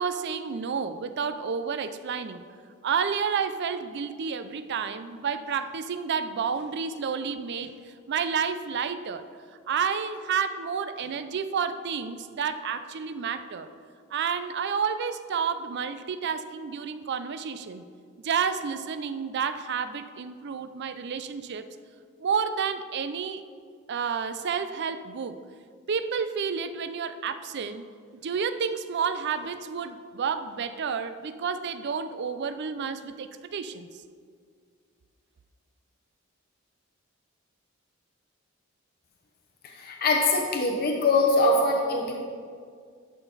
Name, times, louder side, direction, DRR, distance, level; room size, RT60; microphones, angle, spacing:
voice 1, 0.0-2.4 2.8-9.3 9.7-13.7 14.1-17.8 18.2-21.7 22.2-23.4 23.9-25.4 25.9-27.9 28.2-33.9, right 6 dB, 55° right, 12 dB, 0.4 m, -30 dB
voice 2, 39.6-42.1, left 2 dB, 50° left, 0 dB, 0.8 m, -23 dB
11.5 x 5.8 x 4.0 m, 2.1 s
head